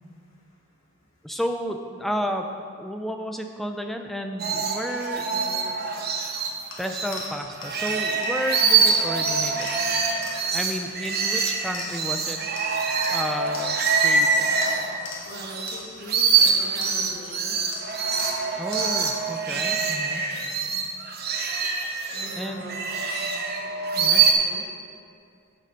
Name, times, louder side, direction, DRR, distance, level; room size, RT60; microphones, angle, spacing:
voice 1, 1.2-2.5 2.8-5.3 6.8-10.1 10.5-12.4 13.1-13.8 14.0-14.5 18.6-20.2 22.4-22.6 24.0-24.2, equal, ahead, 4 dB, 0.5 m, -32 dB
sound 1, 4.4-7.3 7.6-15.8 16.0-24.3, right 5 dB, 50° right, 1.0 m, -24 dB
voice 2, 5.3-6.0 15.3-18.0 19.4-19.7 22.1-22.9 23.9-24.7, equal, 80° left, -3 dB, 2.0 m, -41 dB
sound 2, 6.7-12.2 12.5-14.3 14.6-17.3 17.7-19.2, left 4 dB, 60° left, 1.4 m, -41 dB
9.6 x 6.8 x 5.3 m, 2.3 s
head